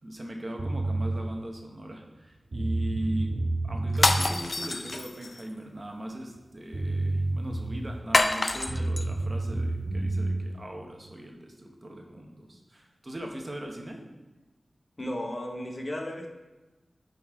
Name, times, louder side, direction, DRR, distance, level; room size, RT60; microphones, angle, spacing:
voice 1, 0.0-3.3 3.6-14.1, right 1 dB, 35° right, 2 dB, 1.0 m, -39 dB
sound 1, 0.6-1.2 2.2-2.3 2.5-4.2 6.4-6.5 6.7-7.9 8.7-10.4, right 2 dB, 60° right, 1.6 m, -29 dB
sound 2, 3.9-5.4 8.1-9.1, left 2 dB, 50° left, 0.4 m, -26 dB
voice 2, 15.0-16.3, left 1 dB, 35° left, 2 dB, 0.9 m, -34 dB
5.9 x 4.0 x 4.8 m, 1.1 s
wide cardioid pair, 90°, 0 cm